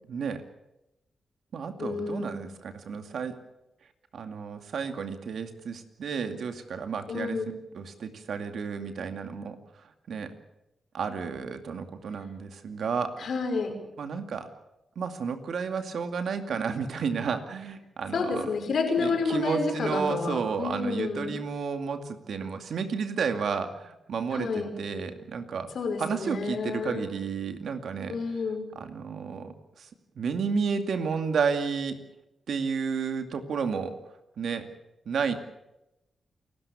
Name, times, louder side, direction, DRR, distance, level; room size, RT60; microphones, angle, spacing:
voice 1, 0.1-0.4 1.5-3.4 4.1-7.4 7.7-10.3 10.9-13.1 14.0-14.5 15.0-18.5 19.0-25.7 26.0-28.2 28.8-29.9 30.2-32.0 32.5-34.0 34.4-34.7 35.1-35.3, right 5 dB, 75° right, 7 dB, 2.4 m, -32 dB
voice 2, 1.8-2.4 7.1-7.5 13.2-13.8 18.1-21.4 24.3-24.7 25.7-27.0 28.1-28.7, left 4 dB, 70° left, 5 dB, 5.6 m, -29 dB
28.5 x 13.0 x 8.5 m, 0.91 s
cardioid pair, 70°, 0 cm